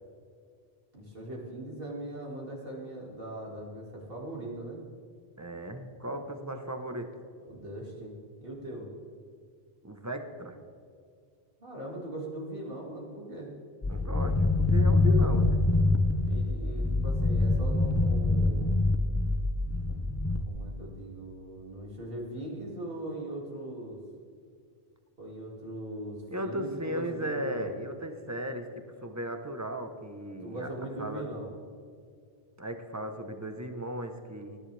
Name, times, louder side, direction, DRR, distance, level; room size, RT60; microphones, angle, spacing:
voice 1, 0.9-4.8 7.5-8.1 8.4-8.9 11.6-13.5 16.3-18.8 19.9-24.0 25.2-27.8 30.4-31.5, right 1 dB, 60° right, -3 dB, 2.7 m, -40 dB
voice 2, 5.4-7.1 9.8-10.6 13.9-15.6 26.3-28.7 29.0-30.7 31.0-31.3 32.6-34.6, right 1 dB, 15° right, 6 dB, 1.0 m, -36 dB
sound 1, 13.8-20.4, left 2 dB, 20° left, 0.4 m, -25 dB
20.0 x 10.5 x 3.4 m, 2.2 s
omnidirectional pair, 1.1 m